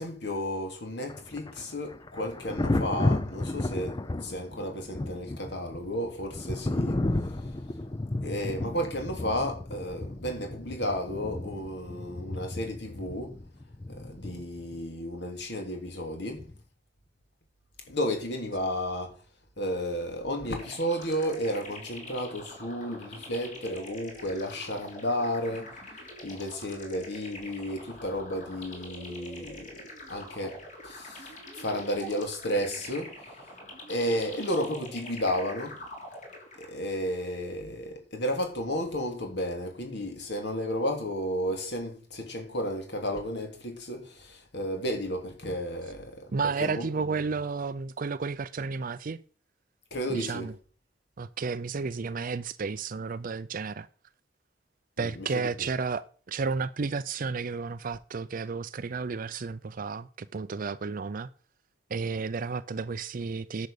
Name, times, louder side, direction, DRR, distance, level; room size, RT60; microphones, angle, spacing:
voice 1, 0.0-7.0 8.2-13.3 13.9-16.5 17.9-19.1 19.6-25.7 26.2-29.8 30.1-33.2 33.9-35.8 36.6-46.3 46.6-47.1 49.9-50.5 55.0-55.5, equal, 60° left, 3.0 m, -33 dB
Thunder, 1.1-14.8 16.4-16.6, left 2 dB, 25° left, 0.6 m, -33 dB
sound 1, 20.5-36.9, left 1 dB, 40° left, 3.6 m, -45 dB
voice 2, 46.3-49.2 50.1-50.5 51.2-53.9 55.0-61.3 61.9-63.7, right 4 dB, 45° right, 0.5 m, -32 dB
10.5 x 6.5 x 6.6 m
head